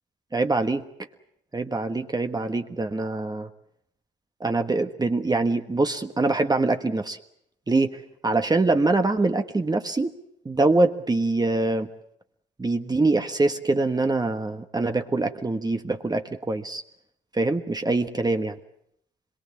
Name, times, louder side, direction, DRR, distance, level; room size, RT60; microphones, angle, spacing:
voice 1, 0.3-0.8 1.5-3.5 4.4-7.2 7.7-8.0 8.2-10.1 10.4-11.9 12.6-16.8 17.3-18.6, right 2 dB, 20° right, 6 dB, 1.4 m, -24 dB
25.5 x 22.5 x 7.3 m, 0.72 s
cardioid pair, 90°, 20 cm